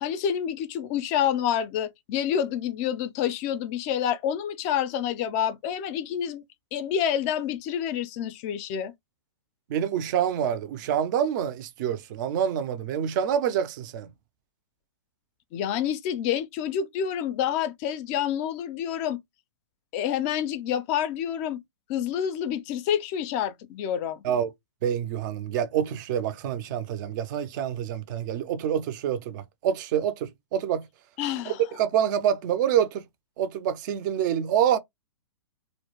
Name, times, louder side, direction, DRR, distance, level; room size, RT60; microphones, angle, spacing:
voice 1, 0.0-6.4 6.7-8.9 15.5-19.2 19.9-21.6 21.9-24.2 31.2-31.6, left 9 dB, 30° left, 0.4 m, -28 dB
voice 2, 9.7-14.1 24.2-24.5 24.8-30.9 31.8-33.0 33.4-34.8, right 9 dB, 40° right, 0.4 m, -26 dB
2.2 x 2.0 x 2.8 m
hypercardioid pair, 125°, 16 cm